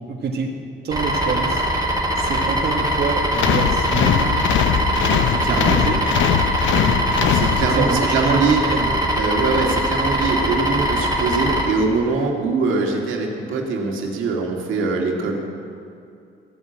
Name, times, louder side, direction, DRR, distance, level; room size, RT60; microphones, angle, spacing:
voice 1, 0.1-0.6 0.8-1.6 2.2-4.4 5.1-6.0 6.7-7.0 7.6-8.4 8.7-8.9, right 4 dB, 55° right, -1 dB, 1.7 m, -26 dB
sound 1, 0.9-11.7, equal, 20° right, 3.4 m, -22 dB
sound 2, 3.3-8.1, left 9 dB, 75° left, 0.7 m, -21 dB
voice 2, 5.4-5.7 7.3-8.6 9.2-15.3, right 4 dB, 85° right, 0 dB, 2.2 m, -22 dB
15.0 x 8.8 x 8.8 m, 2.5 s
cardioid pair, 90°, 20 cm